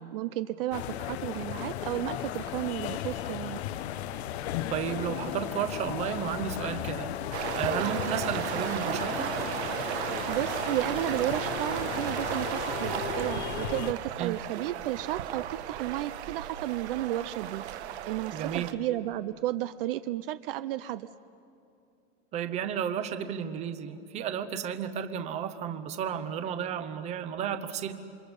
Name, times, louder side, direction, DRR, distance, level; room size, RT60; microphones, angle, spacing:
voice 1, 0.0-3.6 10.3-21.1, right 14 dB, 55° right, 13 dB, 0.6 m, -33 dB
sound 1, 0.7-13.9, left 11 dB, 70° left, 0.9 m, -35 dB
voice 2, 4.7-9.4 14.2-14.3 18.3-18.7 22.3-27.9, right 8 dB, 20° right, 9 dB, 0.8 m, -33 dB
sound 2, 7.3-18.7, right 11 dB, 70° right, 1.4 m, -35 dB
28.5 x 25.5 x 5.3 m, 2.5 s
supercardioid pair, 175°, 34 cm